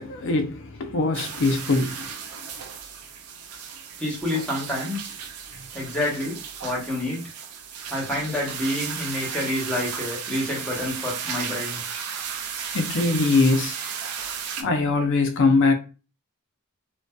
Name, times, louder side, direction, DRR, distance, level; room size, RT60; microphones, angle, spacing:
voice 1, 0.0-2.2 12.7-13.8 14.6-15.7, left 3 dB, 60° left, 0.5 m, -22 dB
sound 1, 1.1-14.6, right 7 dB, 80° right, 0.4 m, -34 dB
voice 2, 4.0-5.1 5.7-7.2 7.9-11.8, left 1 dB, 5° left, 0.9 m, -28 dB
2.6 x 2.2 x 2.2 m
head